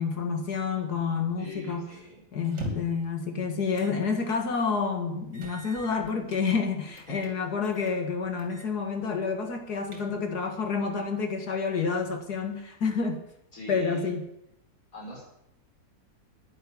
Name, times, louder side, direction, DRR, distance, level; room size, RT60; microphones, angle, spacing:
voice 1, 0.0-1.9 2.3-13.2 13.7-14.2, left 5 dB, 80° left, 5 dB, 2.4 m, -29 dB
voice 2, 1.4-2.2 7.1-7.3 13.5-14.1 14.9-15.2, equal, 60° left, -2 dB, 5.9 m, -42 dB
sound 1, 2.4-3.1 3.8-4.0 4.4-4.5 5.3-6.4 7.0-7.3 7.6-8.0 8.4-8.7 9.0-9.1 9.6-10.4, equal, 45° right, 2.9 m, -41 dB
11.0 x 10.0 x 8.4 m, 0.78 s
omnidirectional pair, 1.7 m